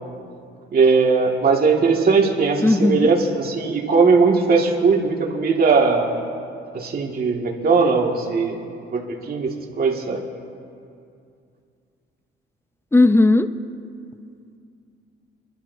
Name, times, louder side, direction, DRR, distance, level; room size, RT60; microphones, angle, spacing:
voice 1, 0.7-6.2 6.7-10.2, right 4 dB, 50° right, 0 dB, 2.1 m, -19 dB
voice 2, 2.6-3.1 12.9-13.5, left 2 dB, 10° left, 11 dB, 0.7 m, -16 dB
28.5 x 11.5 x 2.8 m, 2.5 s
cardioid pair, 90°, 20 cm